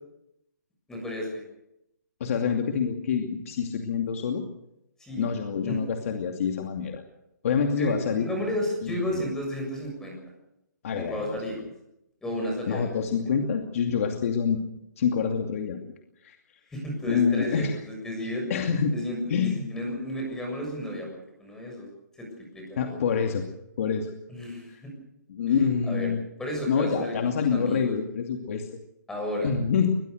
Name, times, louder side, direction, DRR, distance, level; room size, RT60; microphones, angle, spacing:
voice 1, 0.9-1.4 5.0-5.3 5.6-5.8 7.8-10.2 10.9-11.6 12.2-13.0 16.7-18.4 18.9-21.9 22.2-23.0 24.3-24.9 25.5-26.1 26.4-27.2 27.5-27.9 29.1-29.5, left 1 dB, 5° left, 1 dB, 7.0 m, -33 dB
voice 2, 2.2-4.4 5.2-7.0 7.4-8.3 8.8-9.0 10.8-11.4 12.7-14.6 15.0-15.8 16.2-16.4 17.0-17.8 18.5-18.9 19.3-19.6 22.8-23.4 23.8-24.1 25.3-26.2 26.7-28.7 29.4-29.9, left 6 dB, 50° left, 3 dB, 2.6 m, -26 dB
22.5 x 21.0 x 6.6 m, 0.83 s
hypercardioid pair, 155°, 10 cm